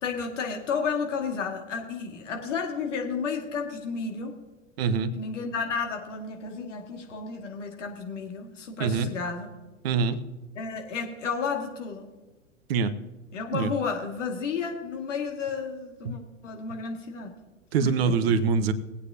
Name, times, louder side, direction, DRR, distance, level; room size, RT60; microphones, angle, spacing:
voice 1, 0.0-4.4 5.2-9.5 10.6-12.1 13.3-17.3 17.8-18.3, left 5 dB, 60° left, 2 dB, 2.1 m, -32 dB
voice 2, 4.8-5.1 8.8-9.1 9.8-10.2 12.7-12.9 13.5-13.7 17.7-18.7, right 5 dB, 45° right, 12 dB, 1.0 m, -24 dB
19.5 x 8.6 x 2.8 m, 1.2 s
figure-of-eight pair, 100°, 41 cm